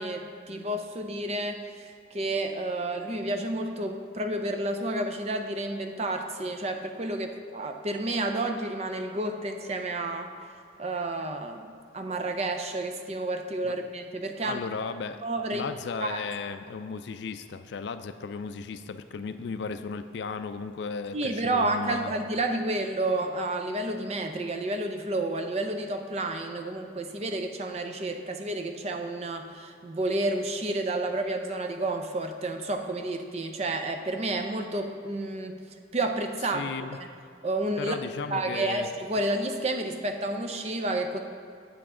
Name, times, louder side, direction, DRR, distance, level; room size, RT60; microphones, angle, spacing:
voice 1, 0.0-10.3 10.8-14.6 15.2-15.7 16.0-16.2 21.1-35.6 35.9-36.7 37.4-38.0 38.3-41.2, right 2 dB, 35° right, 6 dB, 0.5 m, -30 dB
voice 2, 14.4-15.2 15.5-22.1 36.5-37.0 37.8-38.9, left 5 dB, 65° left, 10 dB, 0.3 m, -35 dB
8.4 x 7.0 x 3.7 m, 2.5 s
head